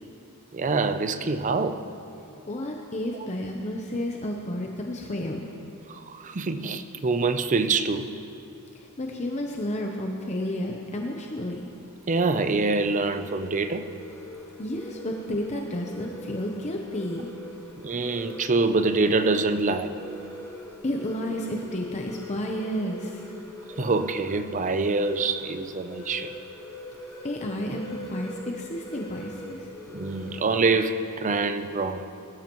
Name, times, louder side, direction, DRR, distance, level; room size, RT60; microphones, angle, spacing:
voice 1, 0.5-1.8 5.9-8.1 12.1-13.9 17.8-19.9 23.7-26.3 29.9-32.0, right 3 dB, 35° right, 10 dB, 0.5 m, -25 dB
voice 2, 2.5-5.5 8.7-11.7 14.6-17.3 20.8-23.3 27.2-29.7, left 1 dB, 30° left, 1 dB, 0.7 m, -31 dB
sound 1, 11.1-30.8, left 1 dB, 15° left, 1.7 m, -43 dB
21.5 x 12.5 x 3.1 m, 2.8 s
head